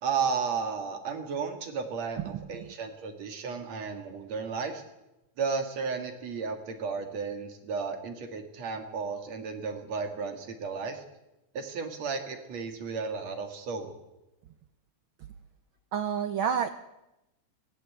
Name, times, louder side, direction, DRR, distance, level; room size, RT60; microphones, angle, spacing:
voice 1, 0.0-4.8 5.4-11.0 11.5-14.0, right 5 dB, 65° right, 6 dB, 3.1 m, -33 dB
voice 2, 2.2-2.7 15.9-16.7, right 8 dB, 80° right, 9 dB, 1.1 m, -30 dB
18.5 x 15.5 x 9.3 m, 0.95 s
omnidirectional pair, 3.3 m